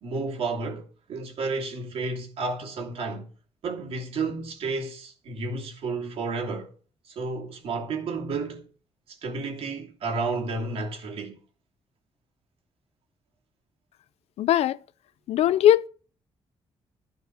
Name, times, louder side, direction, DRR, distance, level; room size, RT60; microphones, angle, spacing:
voice 1, 0.0-3.3 3.6-6.7 7.0-8.7 9.1-11.4, right 3 dB, 65° right, 2.8 m, -31 dB
voice 2, 14.4-14.8 15.3-15.9, left 11 dB, 80° left, 0.5 m, -20 dB
13.0 x 5.3 x 8.1 m
cardioid pair, 140°, 10 cm